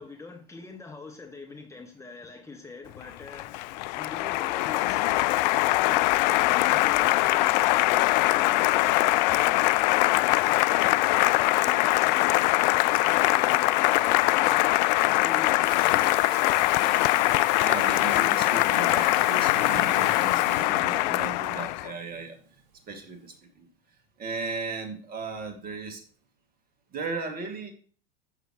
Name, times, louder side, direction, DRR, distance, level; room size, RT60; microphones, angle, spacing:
voice 1, 0.0-3.6 3.9-12.4 12.8-16.8 20.5-21.1, left 3 dB, 10° left, 3 dB, 1.6 m, -44 dB
Applause, 3.0-21.9, left 19 dB, 50° left, 0.4 m, -22 dB
Water tap faucet / Sink (filling or washing), 15.6-23.3, right 5 dB, 65° right, 2.2 m, -44 dB
voice 2, 17.6-22.4 22.9-23.7 24.2-26.0 26.9-27.7, right 3 dB, 30° right, 5 dB, 2.5 m, -36 dB
12.0 x 7.8 x 3.2 m, 0.41 s
figure-of-eight pair, 90°, 30 cm